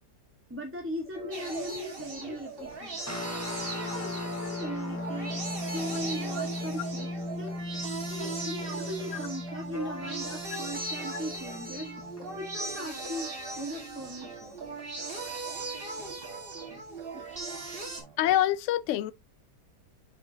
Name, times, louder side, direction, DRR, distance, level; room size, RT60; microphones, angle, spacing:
voice 1, 0.5-3.0 3.8-5.3 5.7-7.1 7.4-7.6 8.1-11.9 12.4-13.3 13.6-14.6 16.6-16.8 17.1-17.2, equal, 10° right, 1.3 m, -38 dB
sound 1, 1.1-18.4, right 6 dB, 65° right, 2.3 m, -49 dB
sound 2, 1.3-18.0, right 3 dB, 35° right, 2.1 m, -39 dB
sound 3, 3.1-12.8, left 2 dB, 10° left, 1.3 m, -37 dB
voice 2, 18.2-19.1, left 13 dB, 75° left, 0.7 m, -26 dB
7.7 x 5.8 x 2.8 m
omnidirectional pair, 1.8 m